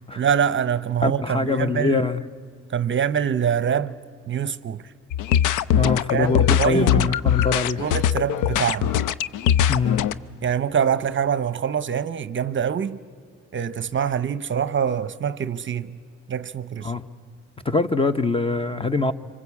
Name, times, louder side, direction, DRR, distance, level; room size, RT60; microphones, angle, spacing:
voice 1, 0.2-2.1 2.7-4.0 4.3-4.9 6.1-7.1 7.5-9.0 10.4-13.0 13.5-16.0 16.3-16.9, right 8 dB, 40° right, 0.7 m, -25 dB
voice 2, 1.0-2.2 5.8-7.8 9.7-10.1 16.8-17.1 17.6-19.1, left 3 dB, 20° left, 0.8 m, -23 dB
sound 1, 5.1-10.1, left 10 dB, 90° left, 0.6 m, -21 dB
26.0 x 25.0 x 8.4 m
cardioid pair, 90°, 30 cm